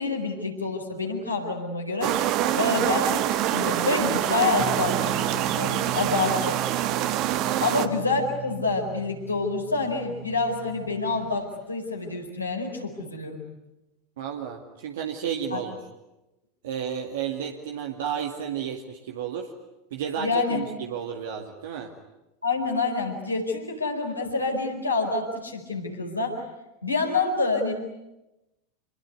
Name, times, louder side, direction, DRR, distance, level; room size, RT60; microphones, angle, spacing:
voice 1, 0.0-2.3 2.5-3.2 3.5-6.6 7.6-13.4 15.5-15.6 20.2-20.7 22.4-26.4 26.8-27.7, left 3 dB, 85° left, 0 dB, 4.7 m, -27 dB
sound 1, 2.0-7.9, right 12 dB, 45° right, 1.6 m, -25 dB
sound 2, 4.6-11.4, right 9 dB, 25° right, 2.3 m, -38 dB
voice 2, 14.2-15.8 16.6-19.5 19.9-21.9, right 8 dB, 60° right, 2 dB, 2.2 m, -32 dB
27.0 x 22.5 x 9.6 m, 0.98 s
figure-of-eight pair, 85°, 0 cm